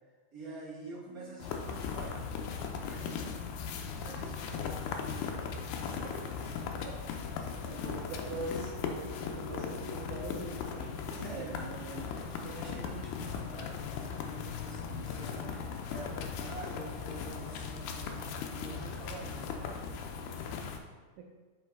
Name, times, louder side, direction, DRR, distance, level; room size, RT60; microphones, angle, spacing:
voice 1, 0.3-2.2 2.8-3.1 4.0-4.8 11.1-11.6 12.1-15.5 15.9-20.3, right 3 dB, 40° right, -7 dB, 1.3 m, -47 dB
voice 2, 1.1-1.5 3.0-3.4 6.0-12.6 21.2-21.3, right 3 dB, 80° right, 1 dB, 2.0 m, -45 dB
sound 1, 1.4-20.8, left 6 dB, 85° left, 2.1 m, -38 dB
sound 2, 8.1-14.0, left 6 dB, 70° left, 1.6 m, -50 dB
6.3 x 5.1 x 3.4 m, 1.4 s
omnidirectional pair, 3.5 m